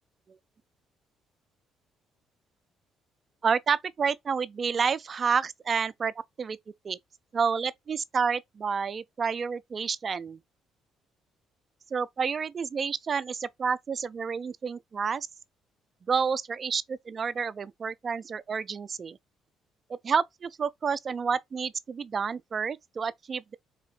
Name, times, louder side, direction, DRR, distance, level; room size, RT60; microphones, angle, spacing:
voice 1, 3.4-6.1 6.4-6.6 6.8-7.0 7.3-10.4 11.9-15.3 16.1-19.2 20.0-23.6, right 6 dB, 45° right, 0.4 m, -29 dB
4.2 x 2.7 x 3.1 m
hypercardioid pair, 55°, 0 cm